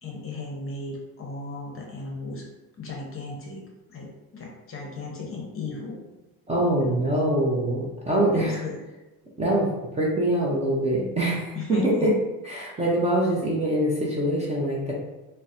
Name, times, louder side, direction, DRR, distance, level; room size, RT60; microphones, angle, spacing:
voice 1, 0.0-2.4 2.8-3.6 3.9-6.0 6.8-6.9 8.1-8.8 11.5-12.1 12.8-12.9, left 3 dB, 30° left, -1 dB, 0.8 m, -36 dB
voice 2, 6.5-8.6 9.4-9.7 10.0-12.1 12.4-14.9, right 1 dB, 15° right, -4 dB, 0.6 m, -24 dB
3.9 x 2.1 x 2.6 m, 1.1 s
supercardioid pair, 110°, 42 cm